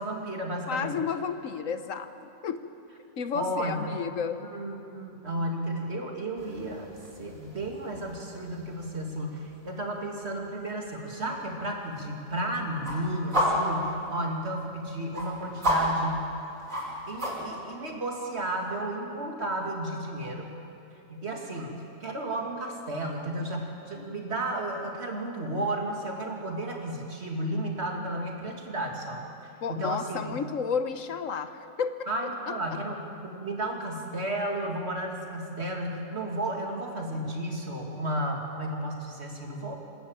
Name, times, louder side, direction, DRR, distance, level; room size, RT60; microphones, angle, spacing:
voice 1, 0.0-1.0 3.3-3.9 4.4-6.9 7.2-16.3 17.1-20.5 21.1-30.4 32.1-39.8, right 1 dB, 55° right, 1 dB, 2.8 m, -33 dB
voice 2, 0.7-2.1 2.4-2.6 3.2-4.4 29.6-32.1, left 6 dB, 80° left, 10 dB, 1.4 m, -31 dB
sound 1, 6.4-17.6, equal, 90° right, 5.9 m, -34 dB
27.0 x 13.0 x 8.8 m, 2.7 s
omnidirectional pair, 1.3 m